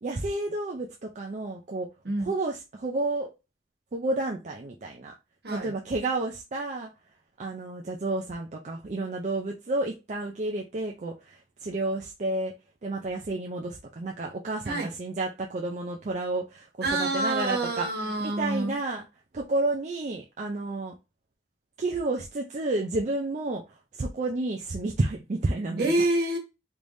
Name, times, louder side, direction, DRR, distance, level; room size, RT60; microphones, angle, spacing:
voice 1, 0.0-1.9 2.2-3.3 3.9-5.1 5.5-6.9 7.4-12.5 12.8-16.7 17.0-17.9 18.4-19.0 19.3-21.0 21.8-23.6 23.9-25.9, right 2 dB, 40° right, 0.4 m, -30 dB
voice 2, 16.8-18.8 25.8-26.4, right 2 dB, 65° right, 1.3 m, -27 dB
3.3 x 3.3 x 2.6 m
head